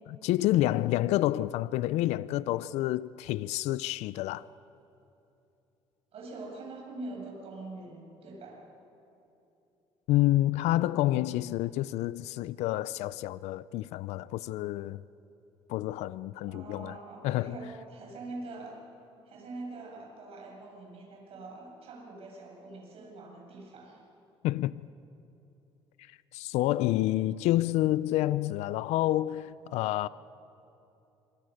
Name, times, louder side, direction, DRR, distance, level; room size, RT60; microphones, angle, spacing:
voice 1, 0.1-4.4 10.1-15.0 15.7-17.0 17.2-17.6 24.4-24.7 26.3-30.1, left 15 dB, 80° left, 0.5 m, -28 dB
voice 2, 6.1-8.6 16.4-18.8 19.3-24.0, right 2 dB, 60° right, 7.7 m, -44 dB
26.0 x 25.0 x 6.6 m
cardioid pair, 90°, 11 cm